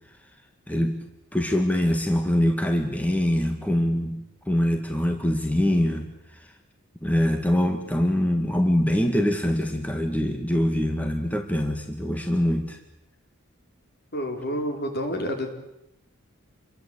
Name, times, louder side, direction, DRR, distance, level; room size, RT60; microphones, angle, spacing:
voice 1, 0.7-1.0 1.3-6.1 6.3-6.5 7.0-12.8, equal, 5° left, 5 dB, 2.0 m, -24 dB
voice 2, 14.1-15.5, equal, 50° left, 4 dB, 5.0 m, -29 dB
28.5 x 23.0 x 8.4 m, 0.85 s
head